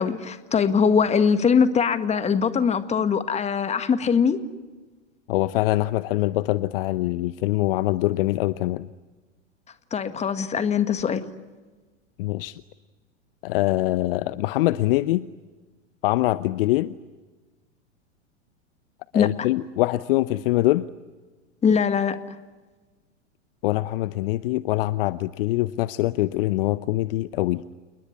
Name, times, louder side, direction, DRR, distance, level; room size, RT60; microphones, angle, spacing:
voice 1, 0.0-4.4 9.9-11.2 19.1-19.3 21.6-22.2, left 6 dB, 20° left, 11 dB, 1.8 m, -21 dB
voice 2, 5.3-8.9 12.2-12.6 13.4-15.3 16.0-16.9 19.1-20.9 23.6-27.6, left 17 dB, 50° left, 15 dB, 0.8 m, -23 dB
28.5 x 21.0 x 9.7 m, 1.3 s
figure-of-eight pair, 95°, 36 cm